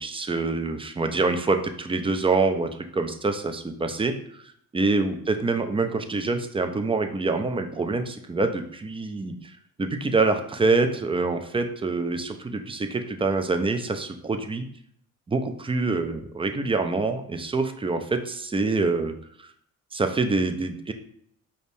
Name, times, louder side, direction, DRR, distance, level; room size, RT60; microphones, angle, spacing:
voice 1, 0.0-4.4 4.7-9.5 9.8-14.7 15.3-19.1 19.4-19.5 19.9-20.9, right 3 dB, 15° right, 6 dB, 0.3 m, -26 dB
5.1 x 2.1 x 2.6 m, 0.66 s
supercardioid pair, 60°, 40 cm